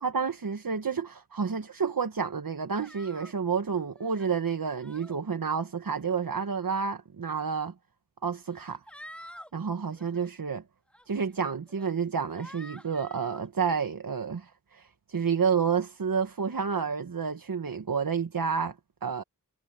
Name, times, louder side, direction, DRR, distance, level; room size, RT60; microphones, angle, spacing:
voice 1, 0.0-7.7 8.2-8.8 9.5-10.6 11.1-18.7 19.0-19.2, right 6 dB, 80° right, 1.3 m, -30 dB
sound 1, 2.7-3.3 3.9-4.3 4.8-5.2 6.1-6.4 7.5-7.6 8.5-9.5 9.9-10.3 10.9-11.1 11.7-11.9 12.3-13.5, equal, 5° left, 1.9 m, -49 dB
wide cardioid pair, 70°, 34 cm